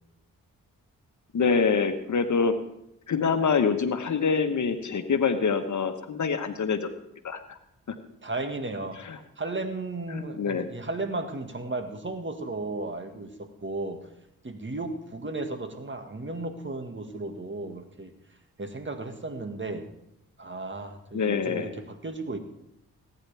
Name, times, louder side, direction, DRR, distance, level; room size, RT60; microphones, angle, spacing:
voice 1, 1.3-2.5 3.1-6.9 7.2-7.6 7.9-8.0 9.0-9.2 10.1-10.7 21.1-21.7, left 5 dB, 50° left, 7 dB, 1.4 m, -25 dB
voice 2, 8.2-9.0 9.4-14.1 14.4-18.1 18.6-19.9 20.4-22.4, right 2 dB, 30° right, 6 dB, 1.9 m, -34 dB
19.0 x 9.8 x 3.5 m, 0.82 s
supercardioid pair, 40°, 36 cm